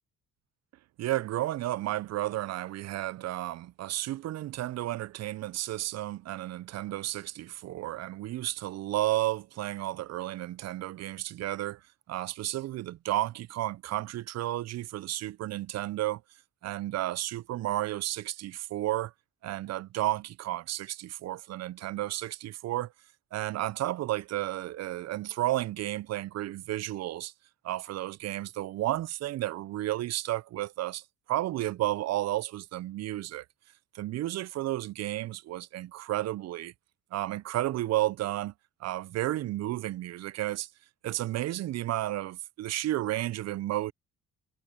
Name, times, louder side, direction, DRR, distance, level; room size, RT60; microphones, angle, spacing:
voice 1, 1.0-11.8 12.1-16.2 16.6-19.1 19.4-22.9 23.3-27.3 27.6-31.0 31.3-33.4 33.9-36.7 37.1-38.5 38.8-40.7 41.0-43.9, right 15 dB, 60° right, 0.4 m, -32 dB
cardioid pair, 90°, 30 cm